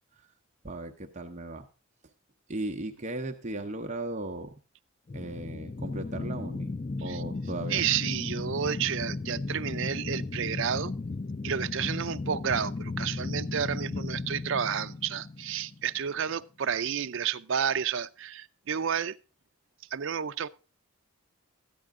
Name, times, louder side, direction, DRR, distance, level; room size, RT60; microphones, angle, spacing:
voice 1, 0.6-1.6 2.5-4.5 5.1-6.7 7.0-7.9, right 2 dB, 30° right, 0.8 m, -36 dB
sound 1, 5.1-16.0, left 3 dB, 30° left, 0.5 m, -35 dB
voice 2, 7.7-10.9 11.4-19.2 19.9-20.5, right 8 dB, 60° right, 0.5 m, -31 dB
13.0 x 10.5 x 3.7 m
head